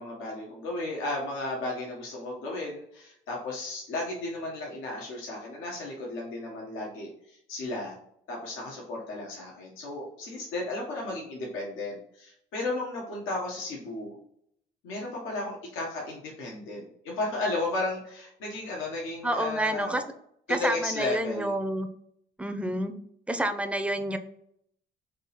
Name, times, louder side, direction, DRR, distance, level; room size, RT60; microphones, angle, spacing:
voice 1, 0.0-7.9 8.3-14.2 14.8-20.0 20.5-21.5, left 2 dB, 90° left, -2 dB, 1.1 m, -34 dB
voice 2, 19.2-20.0 20.5-21.9 22.4-23.0 23.3-24.2, right 1 dB, 5° right, 6 dB, 0.5 m, -29 dB
3.7 x 2.8 x 4.0 m, 0.70 s
cardioid pair, 90°, 20 cm